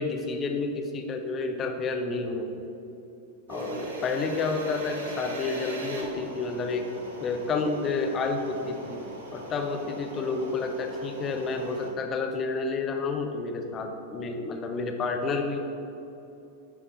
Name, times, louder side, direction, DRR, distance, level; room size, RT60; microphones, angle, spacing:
voice 1, 0.0-2.5 3.5-6.9 7.2-9.0 9.3-15.6, left 3 dB, 30° left, 4 dB, 0.8 m, -30 dB
sound 1, 3.5-11.9, right 2 dB, 65° right, 1.2 m, -40 dB
10.5 x 5.4 x 4.0 m, 2.8 s
figure-of-eight pair, 90°, 0 cm